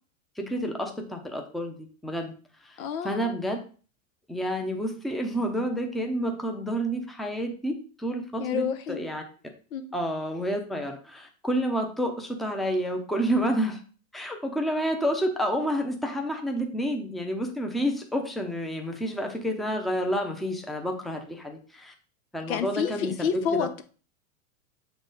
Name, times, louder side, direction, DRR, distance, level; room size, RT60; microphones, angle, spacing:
voice 1, 0.4-2.3 2.6-3.6 4.3-9.2 9.9-13.8 14.1-21.9 22.3-23.3 23.6-23.7, equal, ahead, 0.7 m, -29 dB
voice 2, 2.8-3.3 8.4-9.0 9.7-9.9 22.5-23.8, left 7 dB, 80° left, 1.0 m, -29 dB
7.1 x 4.1 x 3.9 m
supercardioid pair, 130°, 41 cm